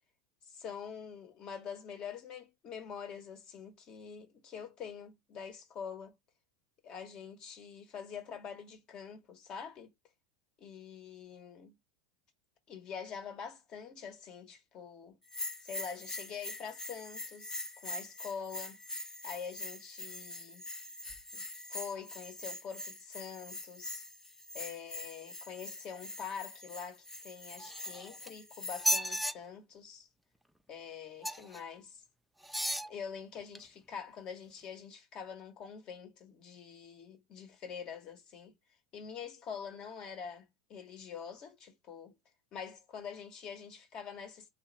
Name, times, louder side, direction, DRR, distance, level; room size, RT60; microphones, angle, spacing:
voice 1, 0.5-6.1 6.8-9.9 10.6-11.7 12.7-15.2 15.6-18.8 19.2-20.6 21.3-21.4 21.7-24.0 24.5-30.1 30.7-32.0 32.8-38.5 38.9-42.1 42.5-44.5, left 7 dB, 40° left, 1.6 m, -45 dB
Bell, 15.3-29.0, left 2 dB, 20° left, 0.9 m, -44 dB
sound 1, 27.6-28.3 28.7-29.3 31.2-31.6 32.4-32.9 33.5-33.6, equal, ahead, 0.3 m, -33 dB
3.2 x 2.8 x 4.1 m
supercardioid pair, 115°, 2 cm